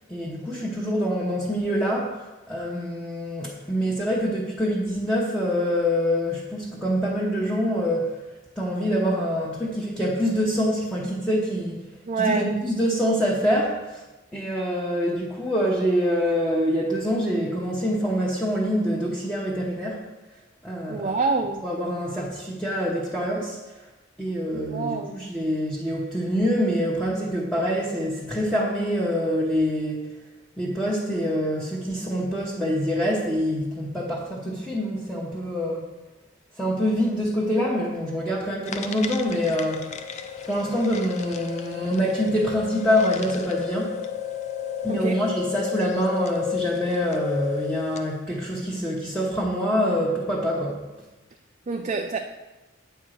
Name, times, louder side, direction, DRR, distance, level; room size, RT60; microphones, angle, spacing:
voice 1, 0.1-8.2 8.6-11.8 12.2-14.0 14.3-20.0 20.6-21.1 21.6-23.6 24.2-30.1 30.6-35.9 36.6-39.9 40.4-44.0 44.8-50.8, equal, ahead, -6 dB, 1.1 m, -25 dB
voice 2, 12.1-12.5 20.9-21.6 24.7-25.2 44.9-45.2 51.7-52.2, right 4 dB, 35° right, 4 dB, 0.4 m, -26 dB
sound 1, 38.6-48.2, left 10 dB, 35° left, 0.5 m, -32 dB
8.7 x 4.6 x 6.5 m, 1.1 s
head